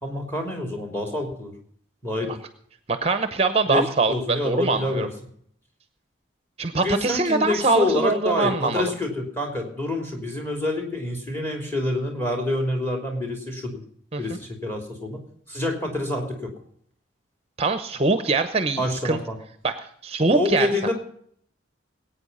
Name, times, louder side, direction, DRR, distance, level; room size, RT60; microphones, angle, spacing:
voice 1, 0.0-1.5 2.0-2.4 3.7-5.1 6.7-13.8 14.2-15.2 15.5-16.5 18.8-19.4 20.3-20.9, left 1 dB, 10° left, 3 dB, 3.2 m, -27 dB
voice 2, 2.9-5.1 6.6-8.8 14.1-14.4 17.6-19.2 19.6-20.7, right 3 dB, 30° right, 10 dB, 0.8 m, -23 dB
20.0 x 8.9 x 5.5 m, 0.65 s
head